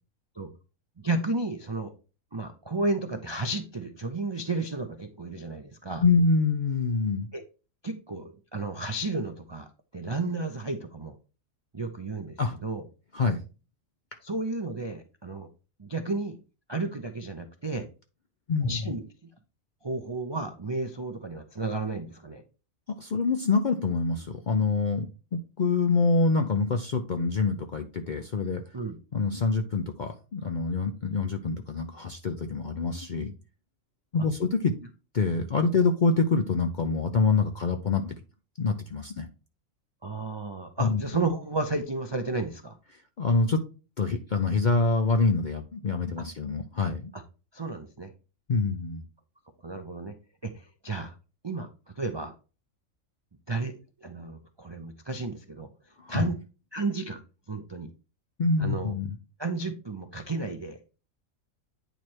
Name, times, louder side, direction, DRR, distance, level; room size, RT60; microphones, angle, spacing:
voice 1, 1.0-1.9 2.3-6.0 7.3-7.4 7.8-9.7 9.9-11.2 11.7-12.8 14.2-15.5 15.8-16.4 16.7-17.9 18.6-19.0 19.8-22.4 28.7-29.0 40.0-42.8 47.1-47.2 47.5-48.1 49.6-50.2 50.4-51.1 51.4-52.3 53.5-55.7 56.1-56.4 56.7-57.2 57.5-57.9 58.6-58.9 59.4-60.8, right 3 dB, 40° right, 5 dB, 0.3 m, -32 dB
voice 2, 6.0-7.3 12.4-12.6 13.1-13.4 18.5-18.8 23.0-28.6 29.1-33.3 34.1-34.7 35.1-38.2 38.6-39.3 40.8-41.0 43.2-43.6 44.0-47.1 48.5-49.0 56.0-56.3 58.4-59.2, left 4 dB, 55° left, 5 dB, 0.5 m, -26 dB
9.0 x 3.2 x 4.4 m, 0.34 s
omnidirectional pair, 1.4 m